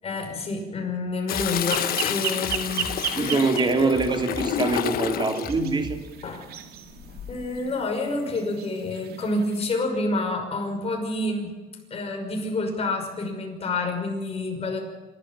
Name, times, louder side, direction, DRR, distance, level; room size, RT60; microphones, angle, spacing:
voice 1, 0.0-3.7 6.2-6.5 7.3-11.6 11.9-14.8, left 2 dB, 35° left, 2 dB, 5.8 m, -28 dB
Toilet flush, 1.3-5.6 7.0-7.5, left 10 dB, 60° left, 1.3 m, -29 dB
sound 1, 1.3-1.5 2.4-3.0 3.9-4.5 5.4-6.0, left 1 dB, ahead, 5.3 m, -38 dB
sound 2, 1.7-9.7, right 8 dB, 65° right, 2.3 m, -36 dB
voice 2, 3.1-6.0, right 3 dB, 25° right, 5 dB, 3.1 m, -24 dB
26.0 x 12.5 x 8.8 m, 1.3 s
cardioid pair, 110°, 17 cm